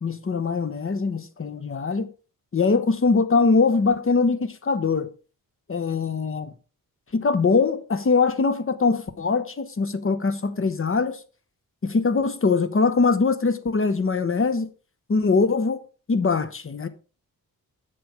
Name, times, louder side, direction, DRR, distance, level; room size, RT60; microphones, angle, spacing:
voice 1, 0.0-2.1 2.5-5.1 5.7-6.5 7.1-11.2 11.8-14.7 15.1-15.8 16.1-16.9, left 4 dB, 35° left, 0.9 m, -22 dB
7.7 x 7.7 x 4.8 m
wide cardioid pair, 135°, 36 cm